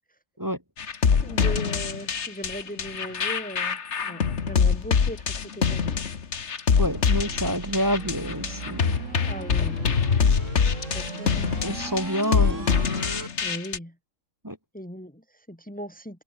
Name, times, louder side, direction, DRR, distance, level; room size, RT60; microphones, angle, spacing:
sound 1, 0.8-13.8, left 6 dB, 55° left, 1.7 m, -24 dB
voice 1, 1.1-6.0 7.1-7.2 9.3-9.8 10.9-11.6 13.4-14.0 14.7-16.2, equal, 5° left, 2.9 m, -38 dB
voice 2, 6.8-9.0 10.9-11.0 11.6-12.7 14.4-14.6, equal, 15° right, 3.2 m, -28 dB
sound 2, 6.9-13.3, right 3 dB, 60° right, 3.7 m, -37 dB
omnidirectional pair, 1.4 m